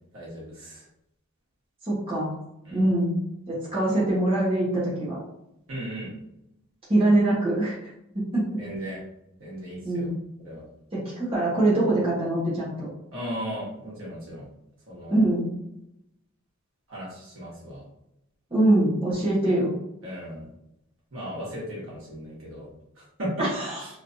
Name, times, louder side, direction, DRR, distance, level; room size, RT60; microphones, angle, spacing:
voice 1, 0.1-0.8 2.7-2.8 5.7-6.1 8.6-9.0 9.4-10.1 10.4-10.6 13.1-14.5 14.9-15.2 16.9-17.9 20.0-20.5 21.1-22.7 23.0-23.5 23.8-23.9, equal, 65° right, -6 dB, 1.5 m, -36 dB
voice 2, 1.8-2.3 2.7-3.2 3.5-5.2 6.9-7.8 8.1-8.6 9.8-10.1 10.9-12.9 15.1-15.5 18.5-19.7 23.4-23.8, right 1 dB, 25° right, -8 dB, 1.3 m, -23 dB
3.1 x 3.1 x 2.7 m, 0.82 s
head